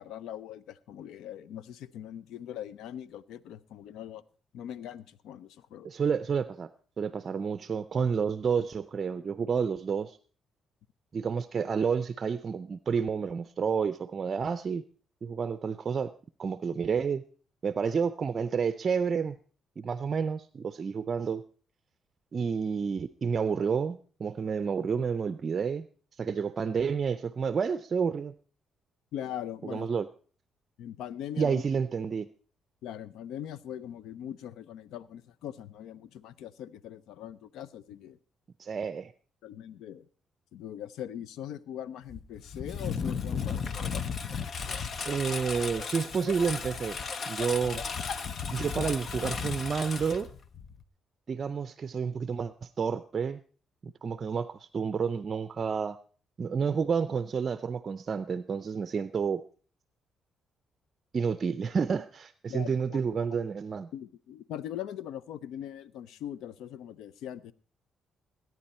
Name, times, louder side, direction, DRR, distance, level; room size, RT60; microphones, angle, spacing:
voice 1, 0.0-4.2 4.5-5.9 29.1-29.9 30.8-31.6 32.8-38.2 39.4-40.1 40.5-44.0 62.5-63.3 63.9-67.5, left 10 dB, 85° left, 18 dB, 0.6 m, -41 dB
voice 2, 5.8-6.7 7.0-10.2 11.1-14.8 15.2-16.1 16.4-17.2 17.6-19.4 19.8-21.4 22.3-25.9 26.1-28.3 29.6-30.1 31.4-32.3 38.6-39.1 45.0-47.0 47.3-47.8 48.5-50.3 51.3-53.4 53.8-56.0 56.4-59.4 61.1-63.9, right 6 dB, 45° right, 13 dB, 0.5 m, -30 dB
Engine, 42.1-50.8, left 5 dB, 50° left, 0.9 m, -35 dB
19.0 x 9.5 x 4.3 m, 0.41 s
cardioid pair, 90°, 0 cm